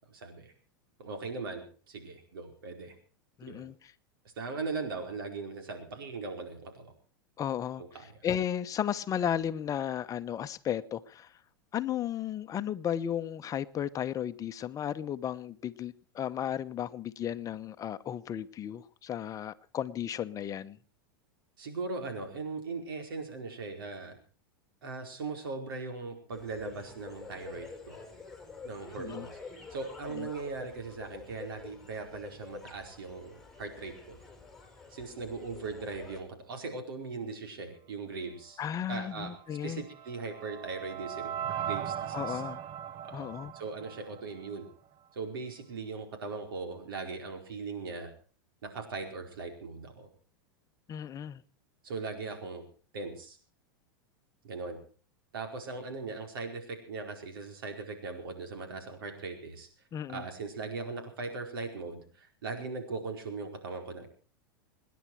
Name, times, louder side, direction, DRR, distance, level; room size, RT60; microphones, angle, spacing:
voice 1, 0.1-0.5 1.0-2.9 3.4-3.6 4.4-6.9 7.8-8.3 21.6-24.2 24.8-28.0 28.6-29.4 29.7-34.2 34.9-38.6 38.9-39.3 39.6-42.4 43.0-44.7 45.1-48.1 48.6-50.1 51.8-52.6 52.9-53.4 54.4-54.8 55.3-59.7 60.1-64.1, right 4 dB, 80° right, 4.7 m, -39 dB
voice 2, 3.4-3.9 7.4-11.3 11.7-20.8 29.0-29.3 30.2-30.3 38.6-39.8 42.1-42.6 43.1-43.5 50.9-51.4 59.9-60.2, left 9 dB, 30° left, 1.0 m, -34 dB
sound 1, 26.3-36.2, left 4 dB, 5° left, 4.7 m, -48 dB
sound 2, 39.5-44.7, right 10 dB, 40° right, 1.1 m, -39 dB
27.0 x 10.5 x 4.7 m
hypercardioid pair, 105°, 12 cm